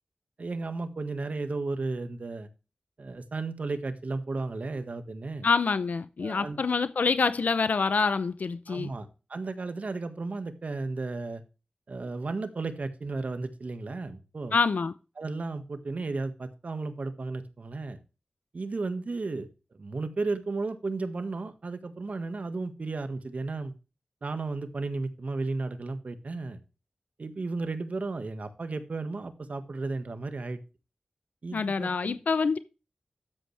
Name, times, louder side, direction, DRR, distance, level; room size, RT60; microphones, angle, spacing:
voice 1, 0.4-2.5 3.0-5.5 6.2-6.6 8.7-11.4 11.9-14.6 15.2-18.0 18.5-23.7 24.2-26.6 27.2-30.6 31.4-32.2, right 3 dB, 65° right, 1.6 m, -34 dB
voice 2, 5.4-8.9 14.5-14.9 31.5-32.6, left 4 dB, 85° left, 0.6 m, -26 dB
12.5 x 8.5 x 3.3 m
wide cardioid pair, 75°, 3 cm